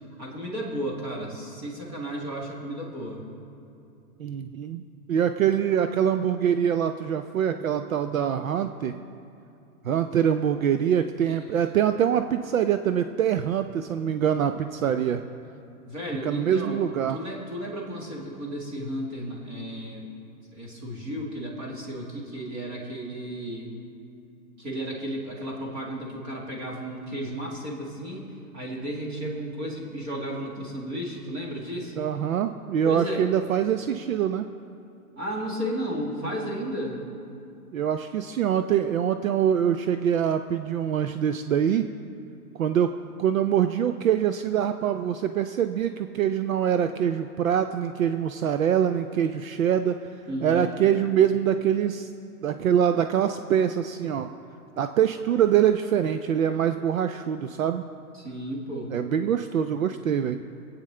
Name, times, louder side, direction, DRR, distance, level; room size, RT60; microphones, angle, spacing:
voice 1, 0.0-3.2 11.3-11.4 15.8-16.8 17.1-20.1 20.5-23.7 24.6-32.0 32.8-33.3 35.2-37.1 50.3-50.7 58.1-58.9, equal, 15° right, -3 dB, 1.7 m, -33 dB
voice 2, 4.2-4.8 5.1-8.9 9.8-15.2 16.2-17.2 32.0-34.5 37.7-41.9 42.6-50.0 50.4-52.1 52.4-54.3 54.8-57.9 58.9-60.4, right 9 dB, 60° right, 9 dB, 0.6 m, -24 dB
25.5 x 9.0 x 3.3 m, 2.7 s
hypercardioid pair, 175°, 46 cm